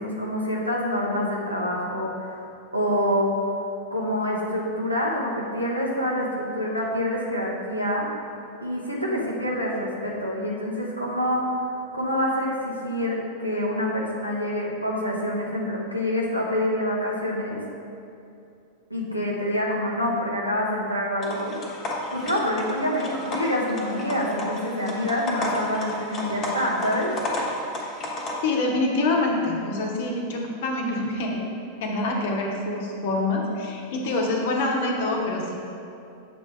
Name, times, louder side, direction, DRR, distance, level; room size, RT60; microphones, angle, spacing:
voice 1, 0.0-3.3 3.9-8.1 8.6-11.5 11.9-17.6 18.9-21.5 22.1-27.1, equal, 90° right, -3 dB, 1.0 m, -26 dB
sound 1, 21.2-28.3, left 1 dB, 30° left, 1.0 m, -33 dB
voice 2, 28.4-31.4 31.8-35.6, left 2 dB, 55° left, 0 dB, 0.9 m, -26 dB
7.4 x 3.4 x 4.7 m, 2.6 s
figure-of-eight pair, 90°, 0 cm